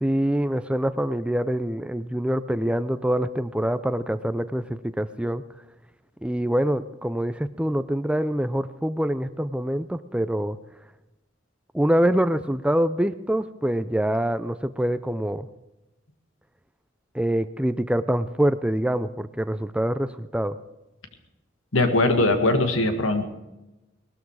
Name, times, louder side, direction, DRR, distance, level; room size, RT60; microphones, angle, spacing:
voice 1, 0.0-5.4 6.2-10.6 11.7-15.5 17.1-20.6, right 1 dB, 5° right, 13 dB, 0.4 m, -25 dB
voice 2, 21.7-23.3, left 2 dB, 85° left, 7 dB, 1.9 m, -21 dB
19.0 x 13.0 x 4.8 m, 1.0 s
head